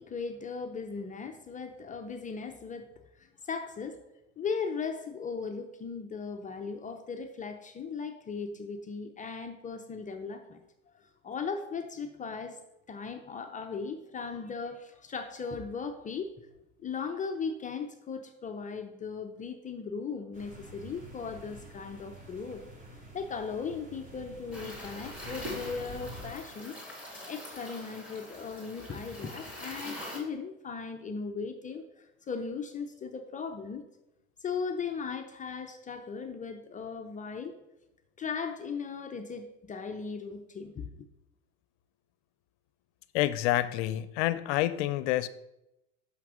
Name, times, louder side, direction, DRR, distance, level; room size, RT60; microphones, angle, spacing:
voice 1, 0.0-4.0 4.4-10.6 10.9-12.6 12.9-16.5 16.8-22.6 23.1-33.8 34.4-37.6 38.2-41.1, left 5 dB, 20° left, 0.6 m, -38 dB
sound 1, 20.3-26.3, equal, 20° right, 2.5 m, -48 dB
sound 2, 24.5-30.2, left 1 dB, 5° right, 3.3 m, -43 dB
voice 2, 43.1-45.3, left 15 dB, 55° left, 0.7 m, -28 dB
5.9 x 5.8 x 6.3 m
hypercardioid pair, 100°, 41 cm